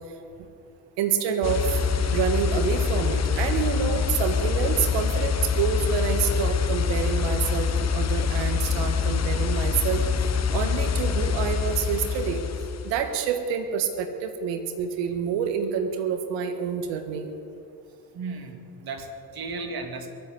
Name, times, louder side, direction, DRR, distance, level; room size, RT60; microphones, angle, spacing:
voice 1, 1.0-1.6 2.1-10.0 10.5-12.4 12.8-17.3, right 7 dB, 90° right, 7 dB, 1.6 m, -27 dB
sound 1, 1.4-13.1, left 6 dB, 40° left, 1.0 m, -25 dB
voice 2, 18.1-20.1, right 3 dB, 55° right, 5 dB, 2.4 m, -35 dB
22.5 x 8.2 x 7.7 m, 2.6 s
supercardioid pair, 75°, 42 cm